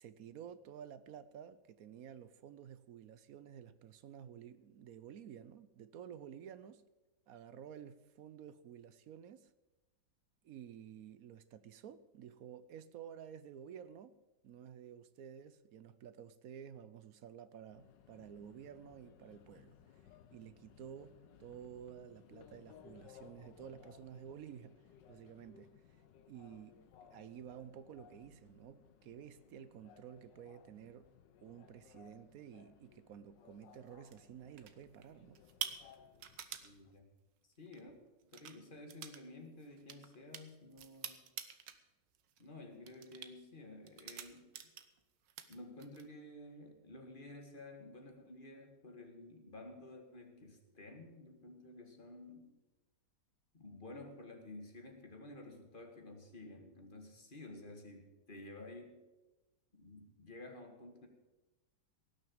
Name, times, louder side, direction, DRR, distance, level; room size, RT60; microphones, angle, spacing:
voice 1, 0.0-6.8 7.3-9.5 10.4-20.0 20.3-24.8 25.1-31.1 31.4-35.5, right 9 dB, 65° right, 15 dB, 1.0 m, -52 dB
Subway metro underground, 17.7-36.9, left 8 dB, 85° left, 1.5 m, -62 dB
sound 1, 33.7-34.2 34.6-35.0 35.3-36.7 37.7-37.8 38.2-38.6 38.9-39.2 39.5-41.8 42.1-42.5 42.9-43.3 43.9-45.0 45.3-46.1, right 9 dB, 90° right, 1.6 m, -46 dB
voice 2, 36.6-37.1 37.6-37.9 38.3-41.2 42.4-44.5 45.5-52.5 53.5-59.0 59.7-61.1, left 2 dB, 30° left, 4 dB, 2.0 m, -52 dB
17.5 x 6.5 x 8.8 m, 1.1 s
omnidirectional pair, 1.9 m